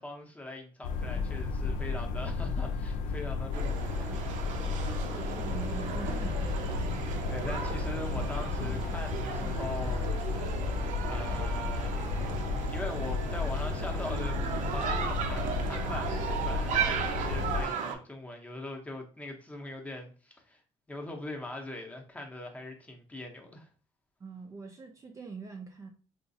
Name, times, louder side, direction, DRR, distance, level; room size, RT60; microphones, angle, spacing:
voice 1, 0.0-4.1 7.3-10.4 11.1-12.0 12.7-20.6 20.9-23.7, left 2 dB, 10° left, 0.6 m, -41 dB
sound 1, 0.8-17.6, left 4 dB, 90° left, 0.4 m, -33 dB
sound 2, 3.5-17.9, right 7 dB, 80° right, 0.5 m, -36 dB
voice 2, 5.0-6.7 24.2-25.9, right 4 dB, 25° right, 0.4 m, -43 dB
3.7 x 2.4 x 2.6 m
cardioid pair, 130°, 13 cm